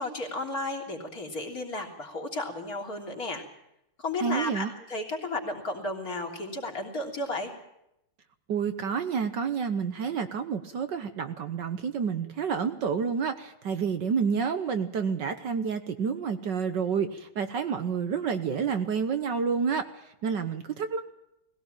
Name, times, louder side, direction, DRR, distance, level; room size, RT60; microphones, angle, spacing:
voice 1, 0.0-3.4 4.0-7.5, left 2 dB, 40° left, 1 dB, 3.9 m, -33 dB
voice 2, 4.2-4.7 8.5-21.1, right 6 dB, 60° right, 9 dB, 1.6 m, -29 dB
20.0 x 17.0 x 9.0 m, 0.83 s
omnidirectional pair, 2.4 m